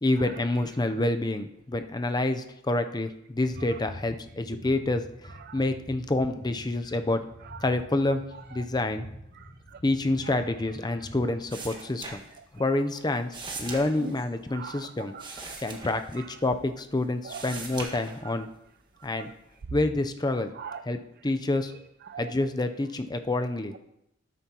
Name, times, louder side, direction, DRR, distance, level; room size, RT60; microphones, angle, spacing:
voice 1, 0.0-7.2 7.6-8.2 8.5-9.0 9.8-12.2 12.5-15.1 15.6-18.5 19.0-19.3 19.7-20.5 20.9-21.7 22.2-23.7, left 2 dB, 20° left, 8 dB, 0.6 m, -28 dB
sound 1, 3.3-11.4, equal, 60° left, 3.5 m, -46 dB
voice 2, 9.4-9.8 10.3-10.4 14.0-14.1 14.5-15.6 16.2-16.3 17.2-17.4 18.2-18.5 19.1-19.3 20.6-20.8 22.1-22.3, right 6 dB, 55° right, 9 dB, 0.4 m, -41 dB
sound 2, 11.5-12.7 13.0-16.7 17.1-18.5 19.0-19.6, right 3 dB, 25° right, 1.6 m, -41 dB
13.0 x 9.1 x 2.9 m, 0.81 s
head